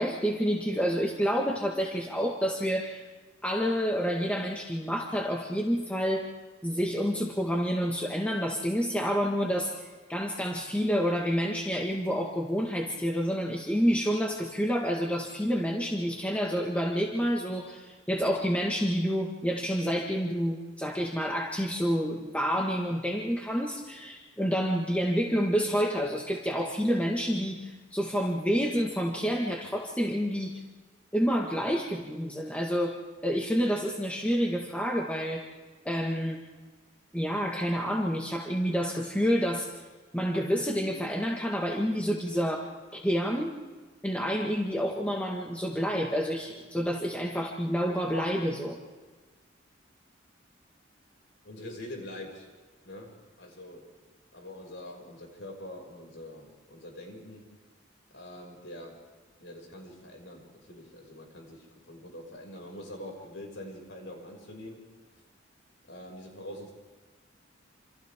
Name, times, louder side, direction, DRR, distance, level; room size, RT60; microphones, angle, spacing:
voice 1, 0.0-3.0 3.4-6.3 6.6-30.6 31.1-33.0 33.2-35.4 35.8-36.4 37.1-39.7 40.1-43.5 44.0-48.8, equal, 5° left, -1 dB, 1.7 m, -28 dB
voice 2, 51.4-52.5 52.8-53.9 54.3-57.5 58.1-59.0 59.4-64.9 65.9-66.7, left 1 dB, 75° left, 1 dB, 6.3 m, -44 dB
28.5 x 27.0 x 3.7 m, 1.3 s
head